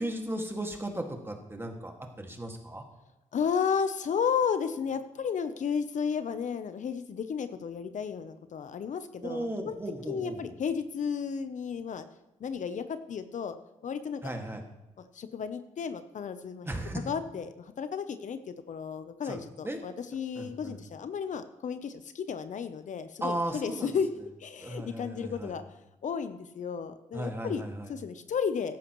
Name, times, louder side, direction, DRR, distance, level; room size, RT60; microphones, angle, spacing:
voice 1, 0.0-2.8 9.2-10.5 14.2-14.6 16.7-17.1 19.2-19.8 20.4-20.8 23.2-24.0 24.6-25.5 27.1-27.9, right 1 dB, 15° right, 3 dB, 2.1 m, -36 dB
voice 2, 3.3-9.8 10.1-12.0 12.4-13.6 13.8-14.2 15.1-16.7 17.1-24.1 24.4-25.6 26.0-27.6 27.9-28.8, left 6 dB, 65° left, 10 dB, 0.8 m, -33 dB
14.0 x 10.5 x 3.1 m, 0.98 s
cardioid pair, 75°, 14 cm